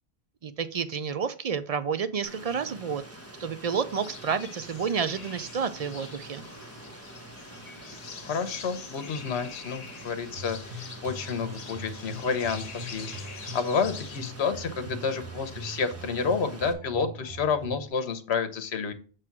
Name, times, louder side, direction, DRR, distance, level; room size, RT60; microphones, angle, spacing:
voice 1, 0.4-3.0 3.4-6.4, right 6 dB, 55° right, 12 dB, 0.4 m, -30 dB
Rain, 2.2-16.7, right 1 dB, 15° right, 0.9 m, -46 dB
sound 1, 3.9-14.3, left 5 dB, 40° left, 0.7 m, -45 dB
voice 2, 8.2-18.9, left 5 dB, 75° left, 11 dB, 1.1 m, -30 dB
sound 2, 10.4-17.9, right 1 dB, 75° right, 1.1 m, -42 dB
7.6 x 3.2 x 5.8 m, 0.39 s
omnidirectional pair, 1.1 m